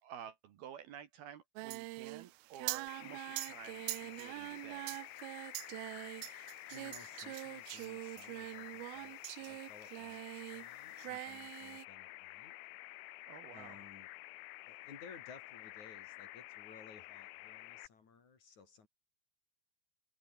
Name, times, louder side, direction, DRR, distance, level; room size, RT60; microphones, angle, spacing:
voice 1, 0.0-5.0 13.3-13.8, right 9 dB, 65° right, 3.3 m, -52 dB
Singing, 1.6-10.7 10.9-11.8, right 23 dB, 85° right, 2.1 m, -44 dB
sound 1, 2.9-17.9, left 19 dB, 80° left, 2.3 m, -51 dB
voice 2, 6.7-12.6 13.5-14.1 14.7-18.9, left 5 dB, 45° left, 4.5 m, -58 dB
omnidirectional pair, 4.9 m